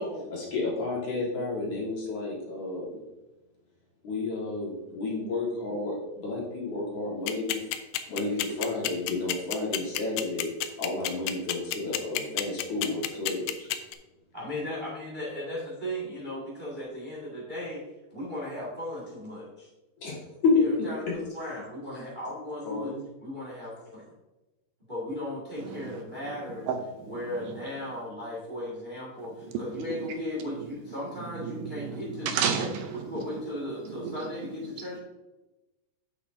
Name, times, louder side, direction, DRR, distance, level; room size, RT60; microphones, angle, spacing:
voice 1, 0.3-3.0 4.0-7.6 8.1-13.7 20.0-20.6 22.6-23.0, left 3 dB, 55° left, 2.8 m, -31 dB
sound 1, 7.3-13.9, left 14 dB, 85° left, 2.5 m, -28 dB
voice 2, 14.3-17.8 18.1-19.7 20.5-22.9 23.2-24.0 24.9-26.7 27.1-32.3 32.6-32.7 33.0-35.0, left 1 dB, 30° right, 0.9 m, -36 dB
voice 3, 25.6-27.6 29.4-30.2 30.6-33.5 33.8-34.9, right 7 dB, 80° right, 2.5 m, -35 dB
9.2 x 8.2 x 2.7 m
omnidirectional pair, 4.6 m